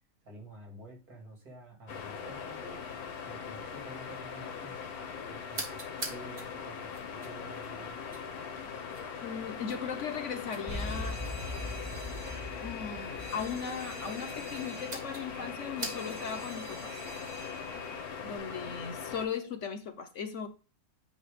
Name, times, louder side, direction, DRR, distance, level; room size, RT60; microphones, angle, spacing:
voice 1, 0.2-2.8 3.2-4.8 5.2-5.8 6.0-6.8 7.1-8.0, right 1 dB, 85° right, 3.1 m, -49 dB
sound 1, 1.9-19.3, left 6 dB, 85° left, 1.5 m, -41 dB
sound 2, 5.5-16.4, right 2 dB, 40° right, 1.9 m, -47 dB
voice 2, 9.2-11.2 12.6-17.0 18.2-20.5, left 6 dB, 60° left, 1.1 m, -38 dB
Alarm, 10.7-18.4, left 1 dB, 25° right, 1.6 m, -42 dB
9.5 x 3.2 x 5.1 m
omnidirectional pair, 1.6 m